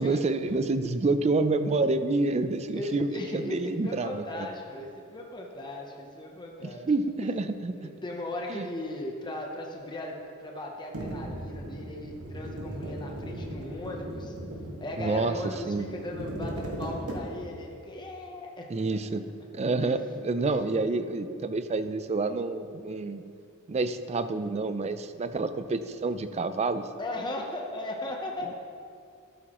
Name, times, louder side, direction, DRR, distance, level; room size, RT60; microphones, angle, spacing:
voice 1, 0.0-3.1 3.3-4.5 6.6-7.9 8.5-8.7 15.0-15.4 15.7-15.9 18.7-19.2 19.5-23.2 23.7-26.9, right 3 dB, 30° right, 11 dB, 0.4 m, -28 dB
voice 2, 2.7-6.9 7.2-7.3 7.8-14.3 14.8-19.1 19.8-20.0 20.4-20.6 27.0-28.5, left 1 dB, 20° left, 0 dB, 0.8 m, -37 dB
sound 1, 10.9-17.7, right 1 dB, 85° right, 1.7 m, -38 dB
12.5 x 9.2 x 3.0 m, 2.4 s
head